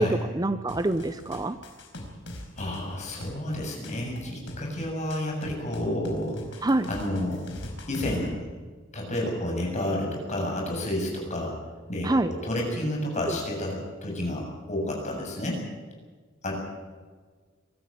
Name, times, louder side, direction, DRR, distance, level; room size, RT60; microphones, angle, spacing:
voice 1, 0.0-1.6 6.6-6.9 12.0-12.3 13.3-13.4, right 2 dB, 20° right, 11 dB, 0.6 m, -25 dB
sound 1, 0.7-8.3, left 1 dB, 60° left, 4.8 m, -41 dB
voice 2, 2.6-7.4 7.9-8.4 8.9-11.5 11.9-15.6 16.4-16.5, left 1 dB, 35° left, 0 dB, 7.3 m, -30 dB
24.0 x 13.0 x 8.9 m, 1.5 s
head